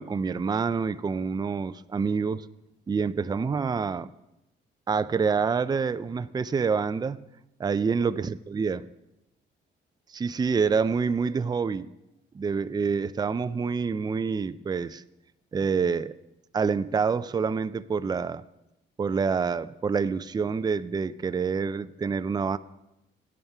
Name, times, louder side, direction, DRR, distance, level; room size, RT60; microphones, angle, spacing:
voice 1, 0.0-2.5 2.9-4.1 4.9-7.2 7.6-8.8 10.1-11.9 12.3-15.0 15.5-16.2 16.5-18.4 19.0-22.6, right 5 dB, 20° right, 14 dB, 0.4 m, -27 dB
16.0 x 11.0 x 3.5 m, 0.90 s
cardioid pair, 90°, 20 cm